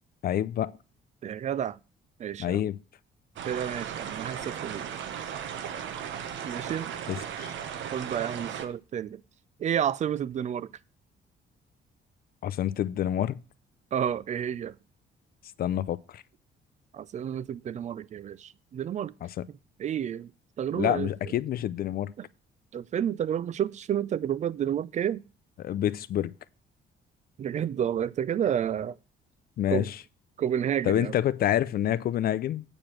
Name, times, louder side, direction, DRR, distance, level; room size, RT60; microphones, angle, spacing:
voice 1, 0.2-0.7 2.4-2.8 7.1-7.5 12.4-13.4 15.6-16.2 19.2-19.3 20.7-22.1 25.6-26.3 29.6-29.9 30.9-32.6, left 11 dB, 50° left, 0.5 m, -27 dB
voice 2, 1.2-1.8 2.2-2.6 3.4-4.9 6.4-6.9 7.9-9.2 9.6-10.7 13.9-14.8 16.9-19.1 19.5-20.3 20.6-21.3 22.2-22.3 22.7-25.2 27.4-29.0 29.7-29.9 30.4-31.1, right 9 dB, 40° right, 0.4 m, -30 dB
sound 1, 3.4-8.7, right 8 dB, 75° right, 1.2 m, -36 dB
8.6 x 4.9 x 7.6 m
cardioid pair, 160°, 19 cm